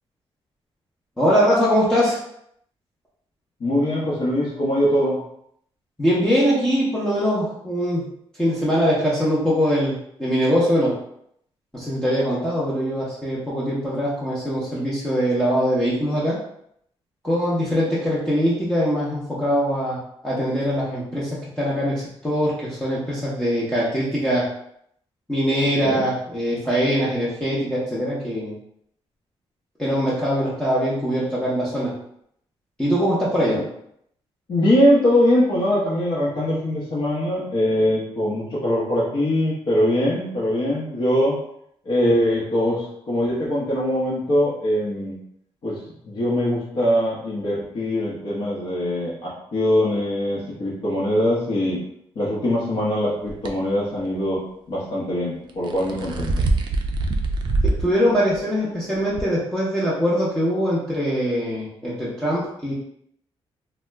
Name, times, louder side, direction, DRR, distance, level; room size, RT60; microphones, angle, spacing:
voice 1, 1.2-2.2 6.0-8.1 8.4-11.0 11.7-16.4 17.2-24.5 25.3-28.5 29.8-31.9 32.8-33.6 57.6-62.7, equal, 5° left, -9 dB, 0.6 m, -22 dB
voice 2, 3.6-5.2 25.6-26.0 34.5-41.4 41.8-45.2 45.6-45.8 46.0-51.8 52.2-54.4 54.7-56.3, left 1 dB, 50° left, -6 dB, 0.8 m, -22 dB
sound 1, 53.3-53.5 55.5-57.9 58.3-58.4 59.2-59.3, right 2 dB, 50° right, 0.4 m, -23 dB
2.7 x 2.1 x 3.3 m, 0.71 s
wide cardioid pair, 155°, 10 cm